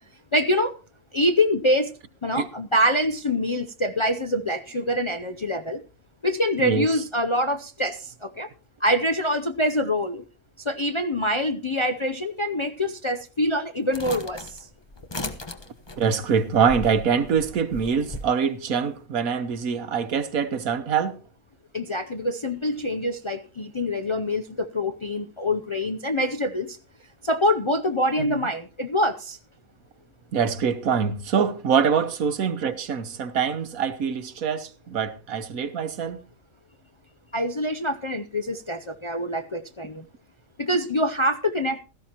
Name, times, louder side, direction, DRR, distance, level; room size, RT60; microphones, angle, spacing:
voice 1, 0.3-0.8 1.1-5.8 6.2-8.5 8.8-10.2 10.6-14.7 21.7-26.8 27.2-29.4 37.3-40.1 40.6-41.8, left 1 dB, 40° left, 0.4 m, -25 dB
sound 1, 13.9-18.3, left 2 dB, 20° left, 1.1 m, -37 dB
voice 2, 16.0-21.2 28.2-28.5 30.3-36.2, right 6 dB, 85° right, 1.5 m, -24 dB
16.5 x 13.5 x 2.9 m
omnidirectional pair, 1.4 m